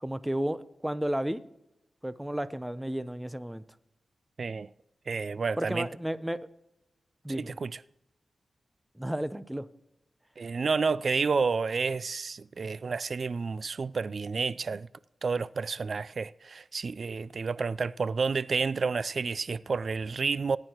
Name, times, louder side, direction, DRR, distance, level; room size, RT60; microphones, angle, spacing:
voice 1, 0.0-1.4 2.0-3.6 5.6-6.5 7.2-7.6 9.0-9.7, right 1 dB, 10° right, 0.6 m, -32 dB
voice 2, 4.4-4.7 5.1-5.9 7.3-7.7 10.4-14.9 15.2-20.6, right 4 dB, 60° right, 0.3 m, -30 dB
18.5 x 9.7 x 3.0 m
wide cardioid pair, 85°, 0 cm